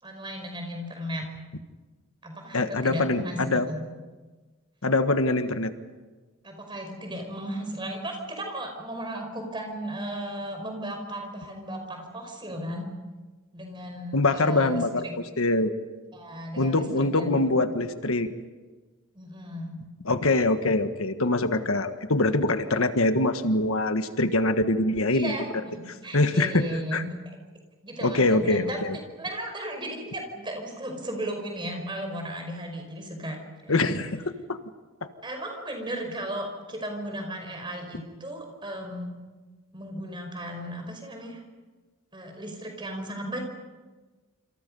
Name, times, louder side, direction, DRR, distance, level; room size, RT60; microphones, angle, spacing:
voice 1, 0.0-1.3 2.2-3.4 3.7-3.8 6.4-12.9 13.5-15.1 16.1-17.4 19.1-19.8 25.1-27.1 27.8-28.8 29.2-33.4 33.6-34.0 35.2-39.2 39.7-41.4 42.1-43.4, right 1 dB, 20° right, 3 dB, 5.2 m, -35 dB
voice 2, 2.5-3.7 4.8-5.7 14.1-15.0 15.4-15.7 16.6-18.3 20.0-25.3 26.1-27.0 28.0-29.0 33.7-34.2 34.5-34.6 35.0-35.1, left 2 dB, 75° left, 8 dB, 1.5 m, -24 dB
27.5 x 27.0 x 5.5 m, 1.3 s
head